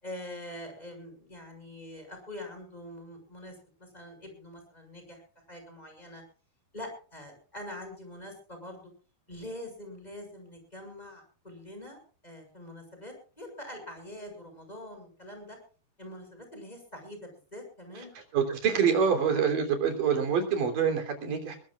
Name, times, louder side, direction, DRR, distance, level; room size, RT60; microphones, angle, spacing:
voice 1, 0.0-5.2 5.5-6.2 6.7-8.9 9.3-15.6 16.0-18.1 19.0-19.2, left 1 dB, 10° left, 4 dB, 6.6 m, -44 dB
voice 2, 18.3-21.6, right 7 dB, 55° right, 4 dB, 4.8 m, -26 dB
22.5 x 20.5 x 2.4 m, 0.39 s
omnidirectional pair, 4.6 m